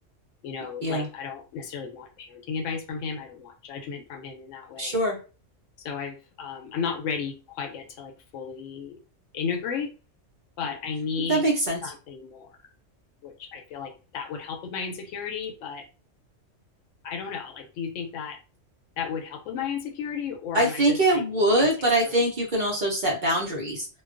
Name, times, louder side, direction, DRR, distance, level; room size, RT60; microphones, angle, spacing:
voice 1, 0.4-5.0 5.8-9.0 9.3-9.9 10.6-11.4 11.8-12.6 13.2-15.9 17.0-18.4 19.0-21.2 21.6-21.7 22.0-22.3, left 6 dB, 80° left, 4 dB, 0.9 m, -34 dB
voice 2, 4.8-5.2 11.3-11.8 20.5-23.9, right 1 dB, 50° right, -3 dB, 0.7 m, -23 dB
2.3 x 2.2 x 2.4 m, 0.34 s
omnidirectional pair, 1.3 m